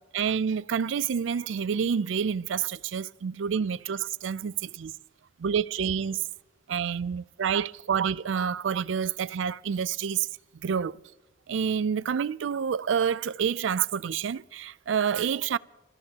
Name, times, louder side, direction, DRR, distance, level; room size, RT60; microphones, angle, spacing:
voice 1, 0.0-4.9 5.4-6.2 6.7-10.3 10.5-11.0 11.5-15.6, right 7 dB, 90° right, 0.4 m, -28 dB
29.0 x 14.5 x 2.9 m
head